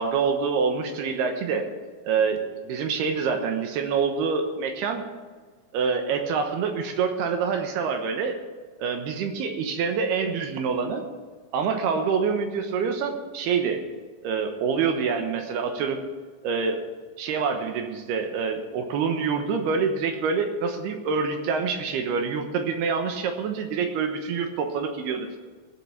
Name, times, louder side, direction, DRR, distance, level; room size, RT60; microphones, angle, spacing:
voice 1, 0.0-1.7 2.0-5.0 5.7-8.4 8.8-11.0 11.5-13.8 14.2-16.0 16.4-16.8 17.2-25.4, right 5 dB, 70° right, 5 dB, 3.0 m, -26 dB
16.5 x 7.7 x 7.3 m, 1.4 s
omnidirectional pair, 5.1 m